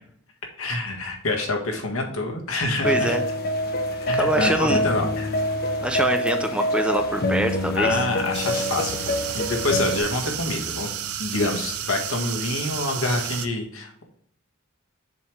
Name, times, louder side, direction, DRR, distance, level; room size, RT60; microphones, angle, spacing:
voice 1, 0.6-3.2 4.1-5.4 7.8-10.9 11.2-14.0, left 2 dB, 70° left, 2 dB, 1.7 m, -27 dB
sound 1, 2.8-10.0, equal, 45° left, 0.9 m, -25 dB
voice 2, 2.8-3.2 4.2-4.8 5.8-8.0, right 1 dB, 5° right, 5 dB, 0.6 m, -24 dB
sound 2, 3.4-11.7, left 1 dB, 20° left, 1.9 m, -44 dB
sound 3, 8.3-13.5, right 10 dB, 85° right, 0.7 m, -31 dB
7.1 x 3.4 x 5.9 m, 0.64 s
head